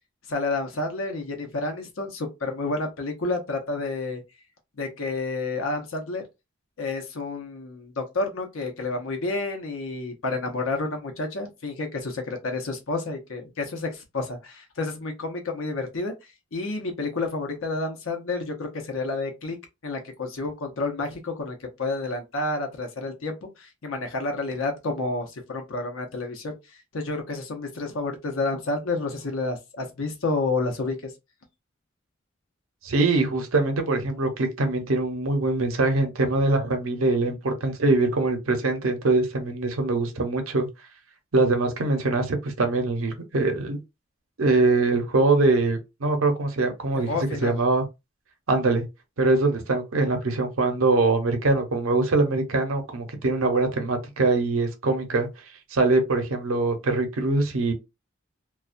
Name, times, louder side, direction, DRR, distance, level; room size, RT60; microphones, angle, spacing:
voice 1, 0.3-4.2 4.8-6.2 6.8-16.1 16.5-19.6 19.8-31.1 46.9-47.6, left 3 dB, 80° left, 0.7 m, -30 dB
voice 2, 32.8-40.7 41.3-43.8 44.4-47.1 47.4-47.9 48.5-48.8 49.2-55.3 55.7-57.7, right 3 dB, 85° right, 0.7 m, -23 dB
2.3 x 2.1 x 2.5 m
head